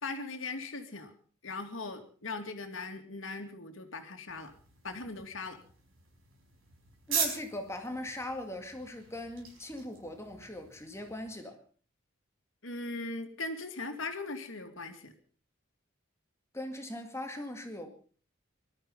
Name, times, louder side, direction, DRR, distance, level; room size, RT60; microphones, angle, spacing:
voice 1, 0.0-1.1 1.4-4.5 4.8-5.6 12.6-15.1, left 3 dB, 75° left, 2.6 m, -39 dB
sound 1, 4.3-11.3, right 6 dB, 85° right, 5.0 m, -40 dB
voice 2, 7.1-11.6 16.5-17.9, left 1 dB, 15° left, 2.1 m, -40 dB
20.0 x 13.0 x 5.5 m
head